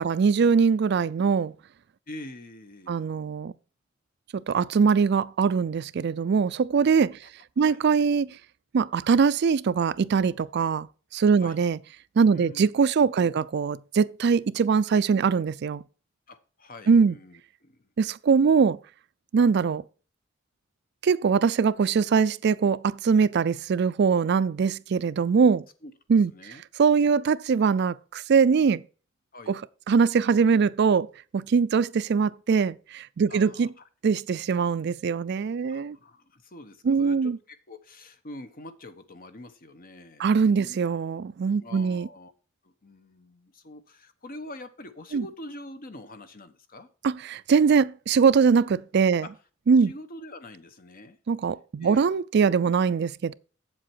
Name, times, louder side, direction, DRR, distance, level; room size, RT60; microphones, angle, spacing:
voice 1, 0.0-1.5 2.9-3.5 4.3-7.2 7.6-8.4 8.7-10.9 11.1-11.8 12.2-15.8 16.9-17.1 18.0-18.8 19.3-19.8 21.0-25.6 26.1-26.3 26.8-28.8 29.5-29.6 29.9-31.1 31.3-33.7 34.0-36.0 36.8-37.4 40.2-42.1 45.1-45.2 47.0-49.3 49.7-49.9 51.3-53.3, right 5 dB, 55° right, 0.4 m, -22 dB
voice 2, 2.1-3.1 7.6-7.8 11.4-11.6 12.3-12.7 13.0-13.1 16.3-17.9 25.8-25.9 26.3-26.6 29.3-29.5 33.3-33.8 35.6-40.8 41.2-41.3 41.6-42.3 42.6-46.9 49.8-51.2 51.8-52.1 52.6-52.7, left 1 dB, 45° left, 1.1 m, -45 dB
7.8 x 7.6 x 4.5 m
head